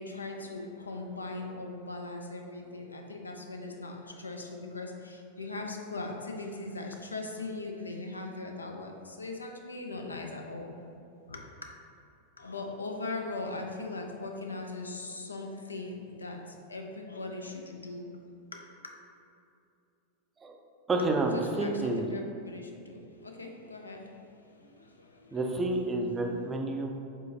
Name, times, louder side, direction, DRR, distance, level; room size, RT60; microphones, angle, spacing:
voice 1, 0.0-10.7 11.3-11.4 12.4-16.4 16.7-18.1 18.5-18.8 21.3-24.0 24.5-25.4, left 2 dB, 80° left, 2 dB, 0.4 m, -40 dB
voice 2, 20.9-22.1 25.3-26.9, right 2 dB, 15° right, 2 dB, 0.5 m, -29 dB
5.2 x 3.7 x 2.7 m, 2.6 s
figure-of-eight pair, 90°, 0 cm